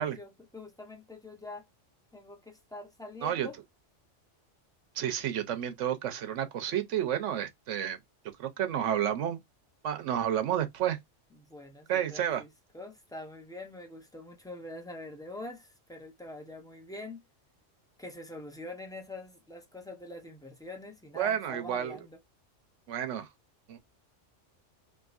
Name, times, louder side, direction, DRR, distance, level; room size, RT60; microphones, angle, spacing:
voice 1, 0.0-1.7 2.1-3.6 11.3-12.5 12.7-17.2 18.0-22.2, left 1 dB, 5° left, 0.3 m, -44 dB
voice 2, 5.0-8.0 8.4-9.4 9.8-11.0 11.9-12.4 21.2-22.0 22.9-23.3 23.7-23.8, right 10 dB, 75° right, 1.0 m, -30 dB
3.6 x 2.6 x 2.4 m
omnidirectional pair, 1.3 m